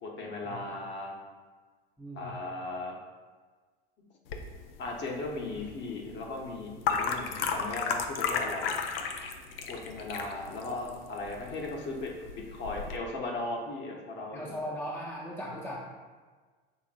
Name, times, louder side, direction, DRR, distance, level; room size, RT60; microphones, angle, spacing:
voice 1, 0.0-1.1 2.1-3.0 4.8-8.8 9.7-14.6, left 2 dB, 35° left, 0 dB, 1.1 m, -37 dB
voice 2, 2.0-2.4 14.3-15.8, equal, 5° left, -3 dB, 0.7 m, -38 dB
sound 1, 4.3-13.0, left 5 dB, 70° left, 0.6 m, -35 dB
5.9 x 3.6 x 2.5 m, 1.4 s
hypercardioid pair, 80°, 30 cm